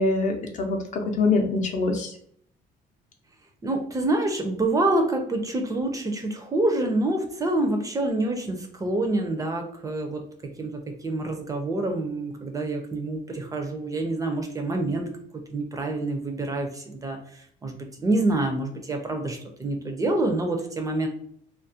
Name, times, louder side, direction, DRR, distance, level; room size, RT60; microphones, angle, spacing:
voice 1, 0.0-2.1, left 3 dB, 50° left, 3 dB, 0.5 m, -24 dB
voice 2, 3.6-10.2 10.6-15.1 15.5-21.1, right 2 dB, 20° right, 3 dB, 0.4 m, -27 dB
2.3 x 2.0 x 2.6 m, 0.64 s
cardioid pair, 135°, 16 cm